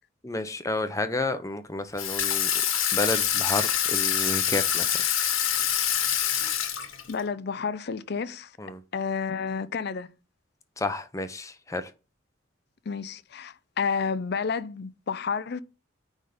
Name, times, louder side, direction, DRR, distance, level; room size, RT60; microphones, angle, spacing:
voice 1, 0.2-2.5 2.9-5.0 8.6-8.8 10.8-11.9, left 2 dB, 15° left, 0.7 m, -31 dB
Water tap faucet / Sink (filling or washing), 2.0-7.2, left 9 dB, 80° left, 1.6 m, -25 dB
voice 2, 7.1-8.5 8.9-10.1 12.9-15.6, left 5 dB, 50° left, 0.5 m, -30 dB
9.5 x 3.7 x 5.1 m
head